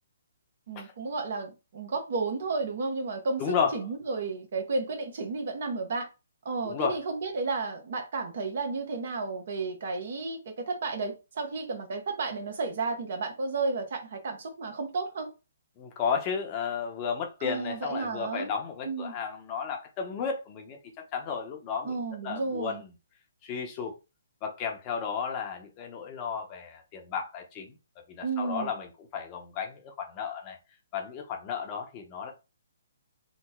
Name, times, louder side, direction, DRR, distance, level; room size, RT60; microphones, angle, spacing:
voice 1, 0.7-3.4 3.7-6.1 6.4-15.3 17.4-18.5 18.8-19.1 21.8-22.8 28.2-28.7, right 3 dB, 55° right, 0.9 m, -32 dB
voice 2, 3.4-3.7 6.6-7.0 15.8-20.8 21.1-22.0 22.2-22.9 23.4-23.9 24.4-27.8 28.1-30.6 30.9-32.3, left 6 dB, 30° left, 0.8 m, -33 dB
3.0 x 2.1 x 3.5 m
hypercardioid pair, 140°, 0 cm